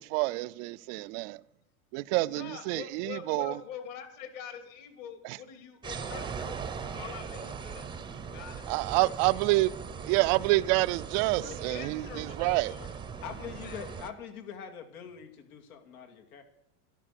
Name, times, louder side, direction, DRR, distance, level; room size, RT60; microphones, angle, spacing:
voice 1, 0.0-1.4 1.9-3.6 5.2-5.4 8.7-9.7 10.0-12.7, right 21 dB, 45° right, 0.5 m, -28 dB
voice 2, 2.3-6.5 6.8-7.9 8.3-9.1 11.4-12.9 13.6-13.8, left 8 dB, 50° left, 2.6 m, -45 dB
sound 1, 5.8-14.1, right 6 dB, 10° right, 0.7 m, -40 dB
voice 3, 13.2-16.4, left 8 dB, 80° left, 2.6 m, -44 dB
13.0 x 11.5 x 6.6 m
supercardioid pair, 140°, 43 cm